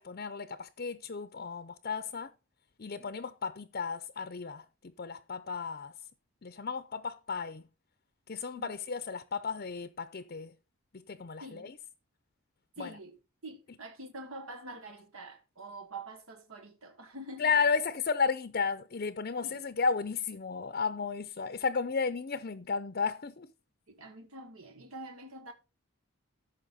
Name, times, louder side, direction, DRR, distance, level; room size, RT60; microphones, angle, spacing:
voice 1, 0.0-2.3 2.8-6.0 6.4-7.7 8.3-10.5 10.9-11.8 12.8-13.0 17.4-23.5, left 5 dB, 45° left, 0.6 m, -33 dB
voice 2, 11.4-11.7 12.8-13.1 13.4-17.5 19.4-19.6 23.9-25.5, right 2 dB, 80° right, 1.4 m, -46 dB
14.0 x 5.9 x 4.2 m
head